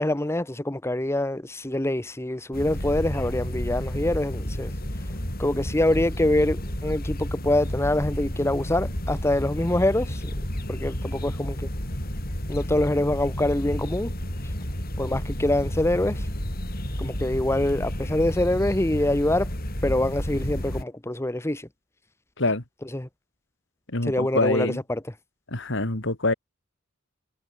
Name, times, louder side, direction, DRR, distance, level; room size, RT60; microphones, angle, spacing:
voice 1, 0.0-4.7 5.4-10.2 10.7-11.7 12.5-14.1 14.4-14.5 15.0-16.3 17.0-19.5 19.8-21.7 22.9-23.1 24.0-25.0, left 1 dB, 15° left, 0.9 m, -25 dB
sound 1, 2.5-20.8, equal, 45° left, 7.5 m, -31 dB
voice 2, 23.9-24.8 25.5-26.3, left 2 dB, 65° left, 3.0 m, -25 dB
head